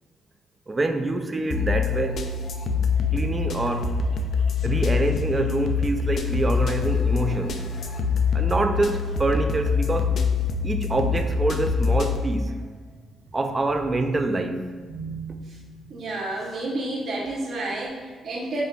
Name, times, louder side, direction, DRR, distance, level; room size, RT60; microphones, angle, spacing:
voice 1, 0.7-2.2 3.1-3.9 4.6-7.6 8.3-10.3 10.6-12.5 13.3-14.7, right 2 dB, 25° right, 6 dB, 0.3 m, -26 dB
sound 1, 1.5-12.2, left 5 dB, 60° left, 0.3 m, -25 dB
voice 2, 14.9-15.6 15.9-18.6, right 2 dB, 60° right, -3 dB, 0.7 m, -31 dB
5.0 x 2.4 x 2.3 m, 1.5 s
cardioid pair, 90°, 0 cm